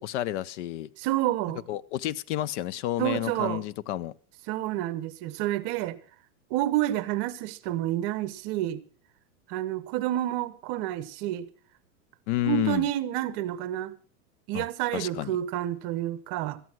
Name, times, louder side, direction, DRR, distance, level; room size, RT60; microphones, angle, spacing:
voice 1, 0.0-0.9 1.7-4.1 12.3-12.9 14.5-14.7 14.9-15.4, left 15 dB, 50° left, 0.6 m, -30 dB
voice 2, 1.0-1.6 3.0-3.6 4.5-6.0 6.5-8.8 9.5-11.5 12.4-14.0 14.5-16.6, right 14 dB, 40° right, 1.0 m, -29 dB
14.0 x 9.5 x 6.0 m
supercardioid pair, 145°, 44 cm